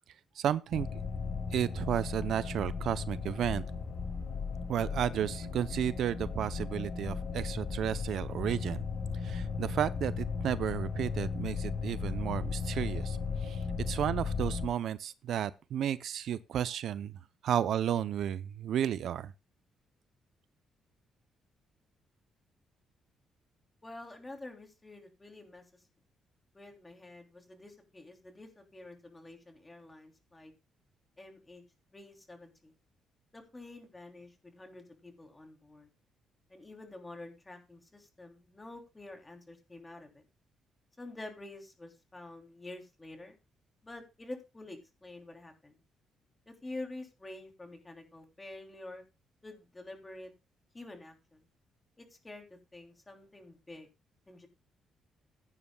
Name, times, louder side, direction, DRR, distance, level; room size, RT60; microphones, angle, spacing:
voice 1, 0.4-1.0 1.5-3.6 4.7-8.8 9.2-17.1 17.4-19.3, right 10 dB, 70° right, 0.6 m, -33 dB
sound 1, 0.7-14.7, left 5 dB, 55° left, 3.3 m, -36 dB
voice 2, 23.8-25.6 26.5-30.5 31.2-31.6 31.9-32.7 33.3-35.9 36.5-40.2 41.0-43.3 43.8-45.8 46.5-49.0 49.4-50.3 50.7-51.4 52.0-52.5 52.7-53.9 54.3-54.5, left 2 dB, 20° left, 3.2 m, -48 dB
16.0 x 9.9 x 2.3 m
cardioid pair, 90°, 0 cm